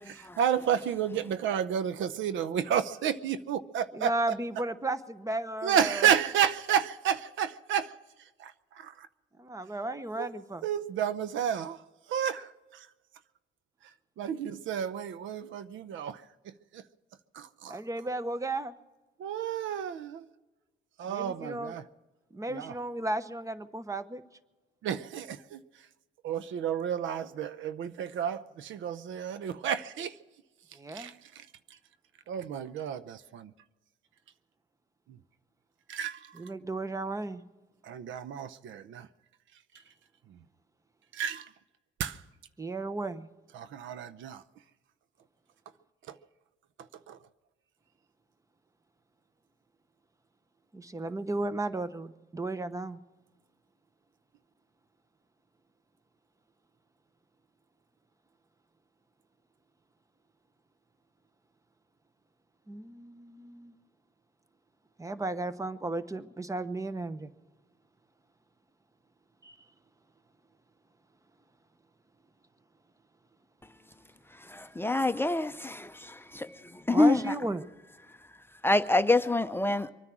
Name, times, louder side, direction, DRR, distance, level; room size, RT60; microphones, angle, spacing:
voice 1, 0.1-4.1 5.6-7.9 8.4-9.1 10.2-10.3 10.6-11.8 12.1-12.9 14.2-16.8 17.3-17.8 19.2-20.3 21.0-21.9 22.5-22.7 24.8-25.6 26.2-30.2 30.9-31.5 32.3-33.5 35.9-36.4 37.8-39.1 40.3-40.4 41.1-41.5 42.0-42.2 43.5-44.4 46.1-46.2 47.1-47.2, right 9 dB, 75° right, 0.7 m, -31 dB
voice 2, 3.9-6.2 9.4-10.6 17.7-18.7 21.1-21.8 22.3-24.2 30.7-31.1 36.3-37.4 42.6-43.3 50.7-53.0 62.7-63.7 65.0-67.3 69.4-69.6 76.9-77.7, right 2 dB, 15° right, 0.9 m, -34 dB
voice 3, 74.5-75.9 76.3-76.5 76.9-77.2 78.6-79.9, left 2 dB, 10° left, 0.6 m, -25 dB
24.0 x 9.7 x 6.1 m
cardioid pair, 90°, 20 cm